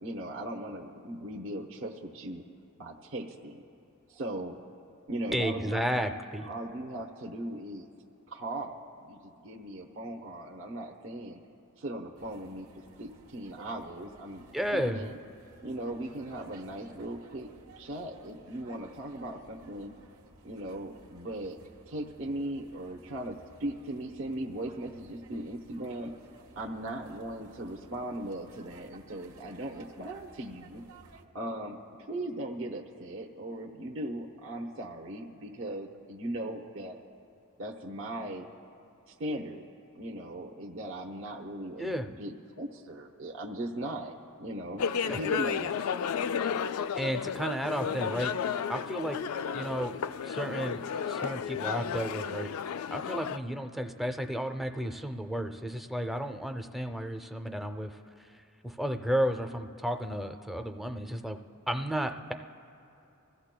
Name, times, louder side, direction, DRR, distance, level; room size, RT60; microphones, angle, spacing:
voice 1, 0.0-2.4 2.8-3.6 4.1-4.6 5.1-5.9 6.4-7.9 8.3-11.4 11.8-12.7 13.0-14.5 14.7-15.2 15.6-17.5 17.8-19.9 20.4-21.6 21.9-26.1 26.5-30.8 31.3-37.0 37.6-38.5 39.1-39.6 40.0-44.1 44.4-45.9, right 1 dB, 65° right, 0 dB, 0.9 m, -38 dB
voice 2, 5.3-6.5 14.5-15.1 41.8-42.1 45.1-45.2 47.0-49.2 49.5-49.9 50.2-50.8 51.1-58.3 58.6-61.4 61.7-62.3, equal, ahead, 5 dB, 0.5 m, -33 dB
sound 1, 12.1-31.2, right 2 dB, 80° right, 1.2 m, -56 dB
sound 2, 44.8-53.4, left 7 dB, 75° left, 0.3 m, -33 dB
26.5 x 15.0 x 2.2 m, 2.8 s
head